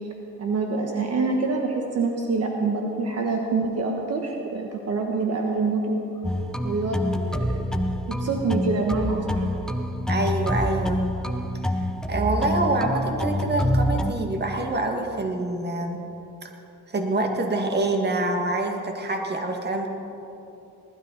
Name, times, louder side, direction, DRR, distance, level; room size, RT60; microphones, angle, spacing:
voice 1, 0.4-6.0 6.6-7.0 7.4-7.6 8.1-9.4, right 3 dB, 55° right, 1 dB, 1.4 m, -26 dB
sound 1, 6.2-14.1, equal, ahead, 0.7 m, -26 dB
voice 2, 10.1-11.0 12.1-16.0 16.4-16.5 16.9-19.9, right 2 dB, 35° right, 3 dB, 1.8 m, -26 dB
20.0 x 12.0 x 4.0 m, 2.9 s
cardioid pair, 90°, 30 cm